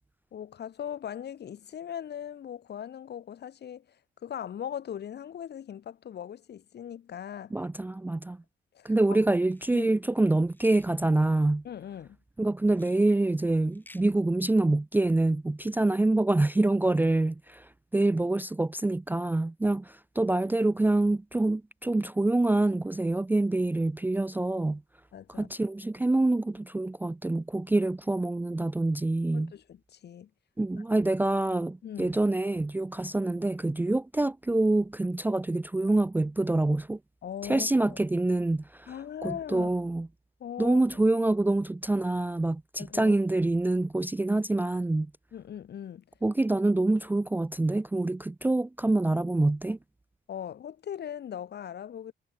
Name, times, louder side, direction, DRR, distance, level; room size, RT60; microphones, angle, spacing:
voice 1, 0.3-4.0 4.2-7.5 8.7-9.2 9.7-9.9 11.6-12.2 25.1-25.5 29.3-30.3 31.8-32.2 37.2-38.0 38.9-39.7 40.4-40.8 42.8-43.1 45.3-46.0 50.3-52.1, left 9 dB, 55° left, 1.6 m, -39 dB
voice 2, 7.5-8.4 8.8-11.6 12.4-24.8 25.4-29.5 30.6-37.0 37.4-38.9 39.2-40.1 40.6-45.1 46.2-49.8, right 2 dB, 10° right, 0.4 m, -26 dB
sound 1, 9.5-9.9 10.5-10.9 12.7-13.0 13.6-14.1, left 1 dB, 10° left, 3.3 m, -54 dB
cardioid pair, 90°, 20 cm